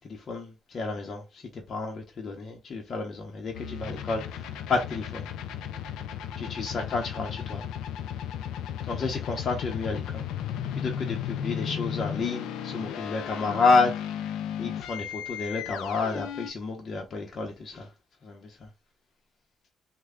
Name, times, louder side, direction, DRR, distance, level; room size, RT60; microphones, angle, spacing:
voice 1, 0.0-1.2 1.5-4.4 4.7-5.2 6.4-7.6 8.8-10.2 10.8-13.9 14.6-17.9 18.2-18.5, left 3 dB, 50° left, 0.8 m, -30 dB
sound 1, 3.5-16.5, left 9 dB, 90° left, 0.4 m, -35 dB
3.2 x 2.2 x 3.6 m
cardioid pair, 90°, 0 cm